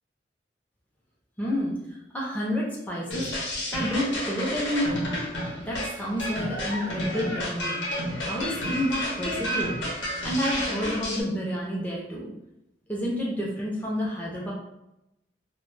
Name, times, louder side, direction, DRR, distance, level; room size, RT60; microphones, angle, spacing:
voice 1, 1.4-1.7 2.1-3.3 3.7-5.0 5.6-7.8 8.2-9.8 10.2-12.3 12.9-14.5, equal, 10° left, -4 dB, 0.4 m, -29 dB
sound 1, 3.1-11.2, left 1 dB, 80° left, 0.7 m, -31 dB
2.1 x 2.0 x 3.1 m, 0.87 s
head